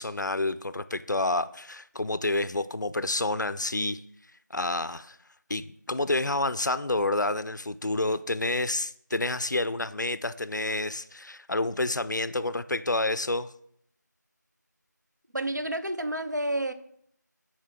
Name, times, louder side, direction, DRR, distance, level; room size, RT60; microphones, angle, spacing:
voice 1, 0.0-4.0 4.5-5.2 5.5-13.5, left 2 dB, 70° left, 14 dB, 0.4 m, -29 dB
voice 2, 15.3-16.7, right 1 dB, 70° right, 9 dB, 0.8 m, -29 dB
10.5 x 4.4 x 3.6 m, 0.69 s
figure-of-eight pair, 180°, 10 cm